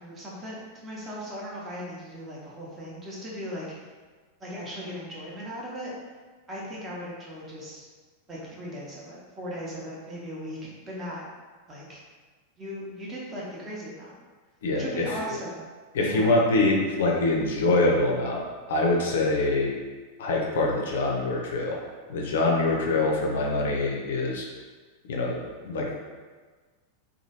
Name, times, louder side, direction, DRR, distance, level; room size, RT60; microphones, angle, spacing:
voice 1, 0.0-3.9 4.4-5.9 6.5-7.8 8.3-11.3 11.7-12.0 12.6-14.1 14.7-15.6 16.0-16.4, equal, 20° right, -5 dB, 0.8 m, -38 dB
voice 2, 14.6-15.4 15.9-18.4 18.7-19.7 20.2-21.8 22.1-24.4 25.0-25.9, left 2 dB, 60° left, -1 dB, 0.4 m, -24 dB
2.9 x 2.3 x 2.8 m, 1.4 s
figure-of-eight pair, 90°, 0 cm